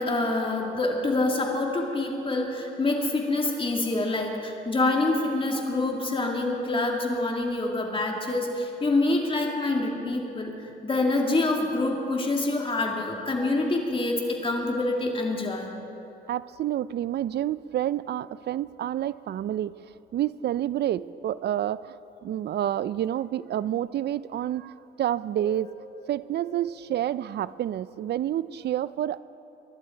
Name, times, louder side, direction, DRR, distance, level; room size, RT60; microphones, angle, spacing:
voice 1, 0.0-10.5 10.8-15.7 25.5-25.6, left 2 dB, 25° left, 1 dB, 2.6 m, -26 dB
voice 2, 16.3-19.7 20.1-22.0 22.2-25.7 26.1-29.2, right 11 dB, 55° right, 18 dB, 0.5 m, -29 dB
23.5 x 11.5 x 4.6 m, 2.8 s
cardioid pair, 90°, 20 cm